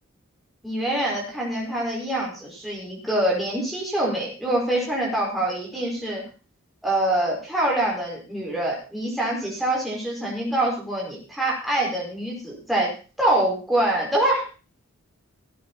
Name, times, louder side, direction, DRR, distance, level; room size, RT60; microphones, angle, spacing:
voice 1, 0.6-6.2 6.8-14.4, right 1 dB, ahead, -4 dB, 5.1 m, -25 dB
17.0 x 9.4 x 4.3 m, 0.35 s
head